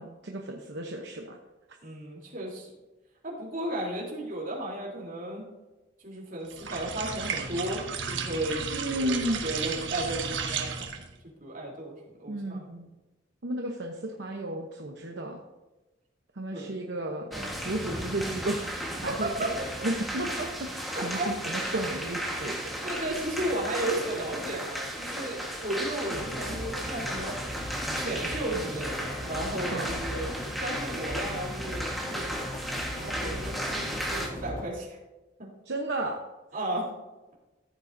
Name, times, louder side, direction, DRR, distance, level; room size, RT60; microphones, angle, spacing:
voice 1, 0.0-1.4 8.7-9.4 12.3-12.9 13.4-15.4 16.4-17.3 17.6-22.7 29.7-29.9 35.7-36.2, right 1 dB, 70° right, 1 dB, 0.9 m, -33 dB
voice 2, 1.8-2.7 3.2-5.4 6.0-10.7 11.2-12.6 16.5-16.8 17.3-17.6 19.0-19.9 20.9-21.3 22.8-27.4 27.9-32.3 32.9-35.0 35.4-35.5 36.5-36.9, right 1 dB, 50° right, -3 dB, 3.3 m, -34 dB
sound 1, 6.5-11.1, right 6 dB, 85° right, 1.2 m, -34 dB
sound 2, 17.3-34.3, equal, ahead, 1.4 m, -35 dB
sound 3, 26.1-34.6, left 1 dB, 45° left, 2.5 m, -38 dB
14.5 x 8.5 x 2.7 m, 1.1 s
head